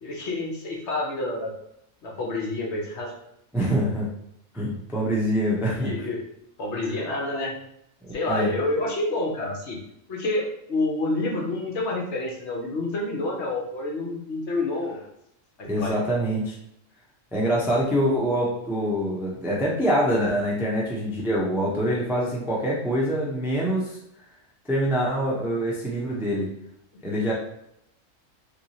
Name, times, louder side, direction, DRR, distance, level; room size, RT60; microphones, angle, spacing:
voice 1, 0.0-1.5 2.0-3.1 5.7-6.2 6.6-7.5 8.1-9.8 10.1-15.0 15.8-16.0, left 2 dB, 60° left, -1 dB, 1.1 m, -28 dB
voice 2, 3.5-4.1 4.5-5.9 8.0-8.5 15.6-16.5 17.3-24.0 24.7-26.5 27.0-27.3, equal, 5° right, -4 dB, 0.4 m, -25 dB
3.2 x 2.9 x 2.8 m, 0.77 s
omnidirectional pair, 1.4 m